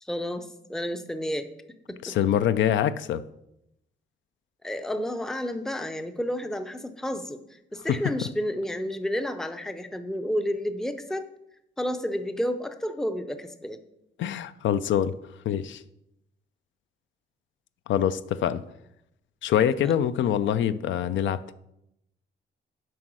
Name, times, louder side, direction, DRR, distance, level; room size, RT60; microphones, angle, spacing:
voice 1, 0.0-2.2 4.6-11.3 11.8-13.8 19.8-19.9, equal, ahead, 9 dB, 0.5 m, -31 dB
voice 2, 2.0-3.2 14.2-15.1 15.5-15.8 17.9-18.6 19.4-21.5, left 10 dB, 75° left, 14 dB, 0.4 m, -25 dB
7.7 x 5.3 x 6.1 m, 0.82 s
wide cardioid pair, 160°, 20 cm